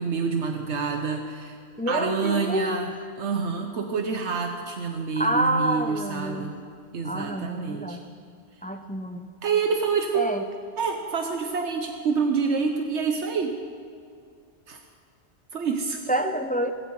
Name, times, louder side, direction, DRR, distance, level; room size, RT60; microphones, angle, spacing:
voice 1, 0.0-1.6 1.9-2.9 3.2-6.6 6.9-8.0 9.4-10.3 10.8-13.6 14.7-14.8 15.5-16.0, right 5 dB, 75° right, 5 dB, 1.2 m, -27 dB
voice 2, 1.8-2.8 5.2-6.5 7.0-8.0 8.6-9.3 10.1-10.4 16.1-16.7, right 1 dB, 10° left, 7 dB, 0.6 m, -27 dB
18.5 x 15.5 x 4.7 m, 2.3 s
omnidirectional pair, 1.2 m